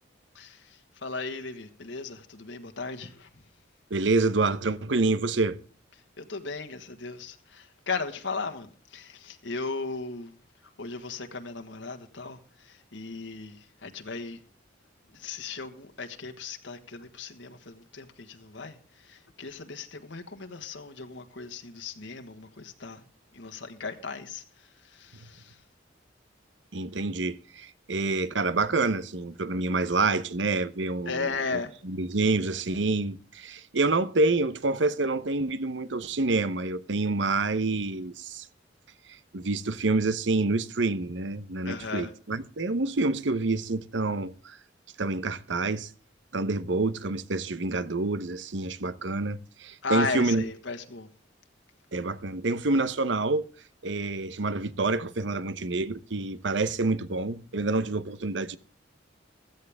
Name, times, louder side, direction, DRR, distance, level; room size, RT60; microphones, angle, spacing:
voice 1, 1.0-3.3 6.2-10.3 10.8-12.4 12.6-14.4 15.1-18.8 19.1-23.0 23.3-24.4 24.9-25.5 31.0-31.7 41.6-42.1 49.8-51.1, left 4 dB, 75° left, 1.5 m, -36 dB
voice 2, 3.9-5.6 25.2-25.3 26.7-38.5 39.3-44.6 45.0-45.9 46.3-50.4 51.9-53.5 53.8-58.6, right 3 dB, 70° right, 0.9 m, -27 dB
16.0 x 13.5 x 3.5 m
head